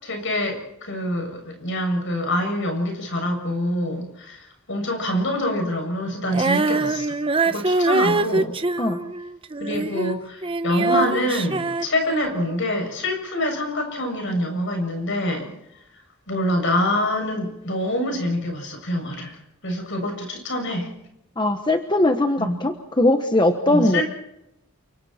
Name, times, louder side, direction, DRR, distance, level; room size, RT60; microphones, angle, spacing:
voice 1, 0.0-7.2 7.4-8.5 9.6-15.5 16.3-19.4 19.6-20.9 22.4-22.5 23.7-24.0, left 1 dB, 55° left, 3 dB, 7.3 m, -25 dB
Female singing, 6.3-10.2 10.4-12.5, right 3 dB, 25° right, 0.8 m, -23 dB
voice 2, 21.4-24.0, left 1 dB, 20° left, 6 dB, 1.2 m, -20 dB
29.0 x 25.0 x 4.4 m, 0.85 s
head